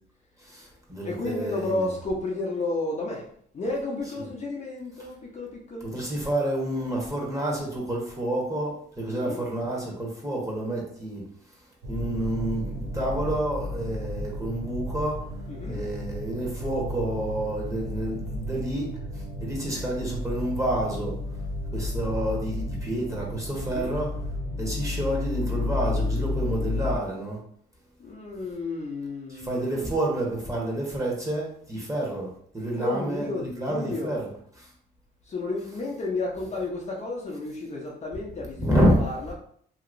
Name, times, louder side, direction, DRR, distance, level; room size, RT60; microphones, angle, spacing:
voice 1, 0.4-1.8 5.8-11.2 11.9-15.2 15.7-18.9 19.1-21.1 21.7-24.1 24.6-27.4 29.3-32.3 32.5-34.2 38.6-39.0, right 1 dB, 15° right, -3 dB, 1.2 m, -29 dB
voice 2, 1.0-3.2 3.5-5.9 9.1-9.4 15.5-15.8 23.7-23.9 28.0-30.0 32.7-34.2 35.3-39.3, left 2 dB, 35° left, -2 dB, 0.7 m, -32 dB
sound 1, 11.8-27.0, left 1 dB, 90° right, 0.6 m, -32 dB
2.9 x 2.8 x 2.6 m, 0.63 s
cardioid pair, 90°, 20 cm